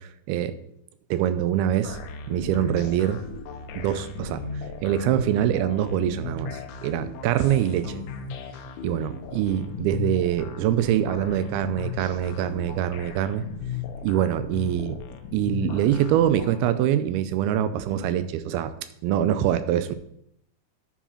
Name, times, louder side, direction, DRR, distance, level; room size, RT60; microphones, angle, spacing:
voice 1, 1.1-2.0 2.3-3.2 3.8-4.5 4.8-8.0 8.8-13.4 14.0-15.0 15.3-18.7 19.0-20.0, right 11 dB, 90° right, 12 dB, 2.5 m, -24 dB
sound 1, 1.8-16.6, left 6 dB, 80° left, 1.9 m, -37 dB
11.0 x 4.8 x 4.3 m, 0.72 s
omnidirectional pair, 4.4 m